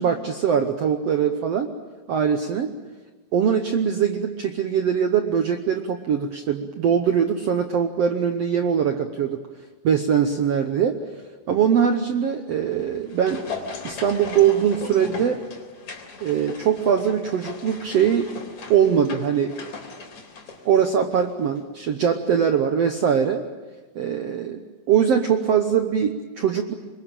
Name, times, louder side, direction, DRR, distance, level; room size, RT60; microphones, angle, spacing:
voice 1, 0.0-1.7 2.1-2.7 3.3-9.4 9.8-11.0 11.5-13.4 13.8-15.4 16.2-18.3 18.7-19.6 20.6-23.4 23.9-24.6 24.9-26.7, right 8 dB, 70° right, 6 dB, 1.6 m, -22 dB
sound 1, 12.7-21.3 21.6-21.7, left 4 dB, 50° left, 4.7 m, -38 dB
26.0 x 22.5 x 9.0 m, 1.3 s
omnidirectional pair, 4.2 m